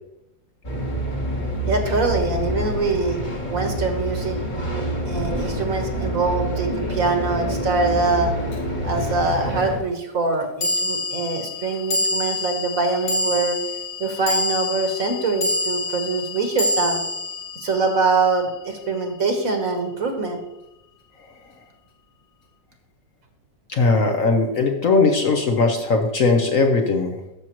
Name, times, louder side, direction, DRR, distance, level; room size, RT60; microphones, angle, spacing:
sound 1, 0.6-9.8, equal, 30° left, 1.3 m, -27 dB
voice 1, 1.7-4.4 5.1-8.3 8.8-13.6 14.0-17.0 17.6-20.4, right 3 dB, 50° right, 4 dB, 1.5 m, -23 dB
sound 2, 8.5-8.6 10.6-19.0, left 2 dB, 80° left, 2.3 m, -27 dB
voice 2, 23.7-27.2, left 3 dB, 55° left, 4 dB, 1.1 m, -19 dB
13.5 x 6.3 x 3.0 m, 0.88 s
omnidirectional pair, 2.0 m